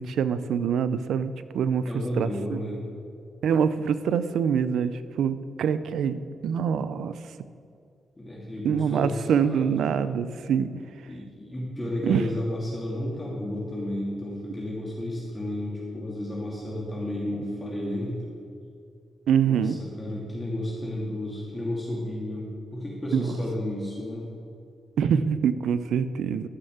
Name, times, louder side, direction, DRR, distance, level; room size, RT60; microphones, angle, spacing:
voice 1, 0.0-1.8 2.2-2.6 3.4-4.9 5.2-7.1 8.6-10.7 12.0-12.2 19.3-19.8 23.1-23.3 25.0-26.5, right 7 dB, 85° right, 13 dB, 0.5 m, -25 dB
voice 2, 1.9-2.8 8.2-9.2 9.5-9.6 11.1-18.3 19.4-24.3, left 1 dB, 20° left, -5 dB, 2.7 m, -32 dB
12.5 x 6.6 x 7.9 m, 2.4 s
cardioid pair, 80°, 0 cm